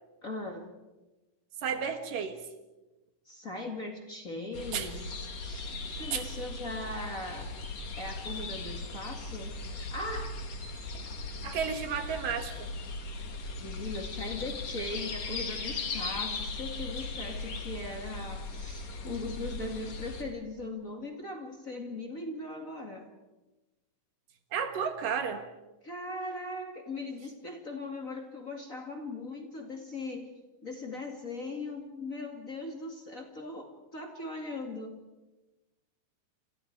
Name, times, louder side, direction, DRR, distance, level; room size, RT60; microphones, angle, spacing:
voice 1, 0.2-0.7 3.3-5.0 5.4-7.5 8.0-10.4 13.6-23.1 25.8-30.3 30.6-35.0, left 2 dB, 30° left, 2 dB, 2.2 m, -39 dB
voice 2, 1.6-2.4 4.7-4.9 6.1-6.3 11.4-12.7 24.5-25.4, right 7 dB, 75° right, 7 dB, 3.3 m, -32 dB
sound 1, 4.5-20.2, left 3 dB, 55° left, 3.4 m, -38 dB
29.0 x 28.0 x 4.8 m, 1.1 s
omnidirectional pair, 3.9 m